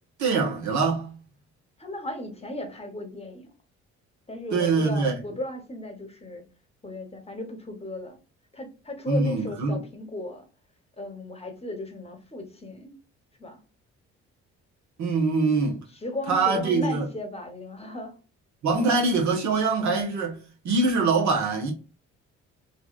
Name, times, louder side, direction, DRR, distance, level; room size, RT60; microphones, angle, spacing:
voice 1, 0.2-1.1 4.5-5.2 9.1-9.8 15.0-15.8 16.3-17.1 18.6-20.4 20.6-21.7, right 3 dB, 65° right, 1.2 m, -23 dB
voice 2, 1.8-3.5 4.3-6.4 6.8-8.2 8.5-10.4 11.0-13.0 13.4-13.6 16.0-18.1, left 1 dB, 20° left, 1.0 m, -36 dB
3.1 x 2.6 x 2.3 m
supercardioid pair, 65°, 31 cm